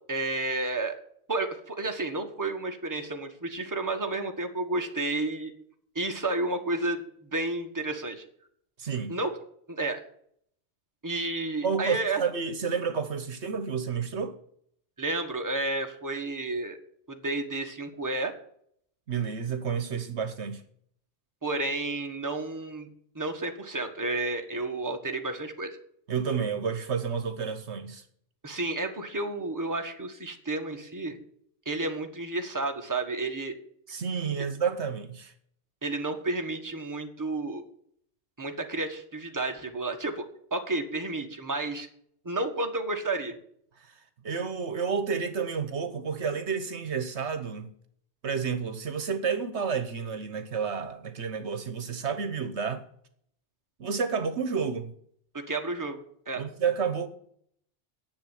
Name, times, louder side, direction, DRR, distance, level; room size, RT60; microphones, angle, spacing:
voice 1, 0.1-0.9 1.3-5.5 5.9-7.0 7.3-8.2 9.1-9.3 9.7-10.0 11.0-12.2 15.0-16.8 17.1-18.3 21.4-22.9 23.1-25.7 28.4-31.2 31.6-33.5 35.8-37.6 38.4-41.9 42.2-43.3 55.3-56.0 56.3-56.4, right 2 dB, 15° right, 1.5 m, -31 dB
voice 2, 8.8-9.2 11.6-14.3 19.1-20.6 26.1-28.0 33.9-35.3 43.8-47.7 48.2-52.8 53.8-54.9 56.4-57.1, right 6 dB, 70° right, 1.4 m, -30 dB
10.5 x 7.3 x 9.1 m
omnidirectional pair, 1.2 m